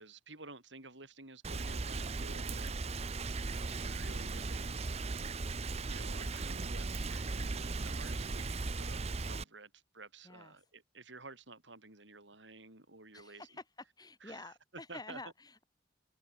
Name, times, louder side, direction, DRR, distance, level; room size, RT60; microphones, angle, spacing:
voice 1, 0.0-2.8 3.7-4.9 5.9-13.5 14.2-15.2, right 3 dB, 85° right, 6.1 m, -52 dB
Rain, 1.4-9.4, right 3 dB, 35° right, 0.7 m, -37 dB
voice 2, 2.8-3.2 10.2-10.6 13.1-13.6 14.0-15.6, left 2 dB, 20° left, 5.2 m, -49 dB
head